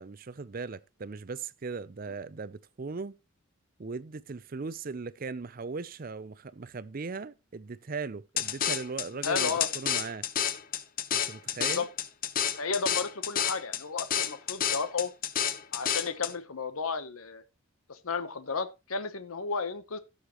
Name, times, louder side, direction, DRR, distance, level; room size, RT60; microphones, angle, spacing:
voice 1, 0.0-3.1 3.8-10.3 11.1-11.9, right 4 dB, 40° right, 0.5 m, -38 dB
sound 1, 8.4-16.3, left 9 dB, 40° left, 0.7 m, -30 dB
voice 2, 9.2-9.7 11.6-11.9 12.6-15.1 15.7-17.4 17.9-20.0, left 5 dB, 90° left, 1.0 m, -33 dB
16.5 x 6.5 x 3.0 m
head